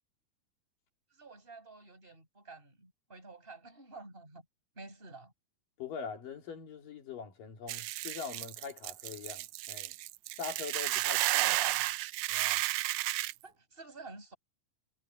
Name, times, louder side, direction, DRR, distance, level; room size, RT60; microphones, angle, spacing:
voice 1, 1.2-4.4 4.8-5.3 11.3-12.0 13.4-14.4, right 3 dB, 15° right, 8.0 m, -49 dB
voice 2, 5.8-10.0 10.4-11.3 12.3-12.6, left 6 dB, 80° left, 4.7 m, -43 dB
Hiss / Boiling, 7.7-13.3, right 18 dB, 80° right, 1.7 m, -32 dB
omnidirectional pair, 3.9 m